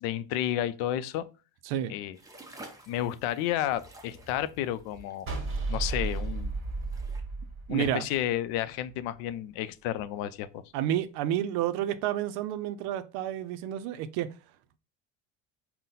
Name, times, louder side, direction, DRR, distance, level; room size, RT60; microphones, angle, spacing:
voice 1, 0.0-1.2 1.9-2.2 2.9-5.3 5.7-6.5 7.7-10.6, left 12 dB, 85° left, 0.5 m, -31 dB
voice 2, 1.6-2.0 7.7-8.1 10.7-14.3, right 11 dB, 80° right, 0.5 m, -30 dB
sound 1, 2.1-7.2, right 1 dB, 10° right, 0.5 m, -51 dB
sound 2, 5.3-8.5, right 3 dB, 35° right, 1.2 m, -33 dB
3.9 x 2.1 x 4.0 m
cardioid pair, 125°, 38 cm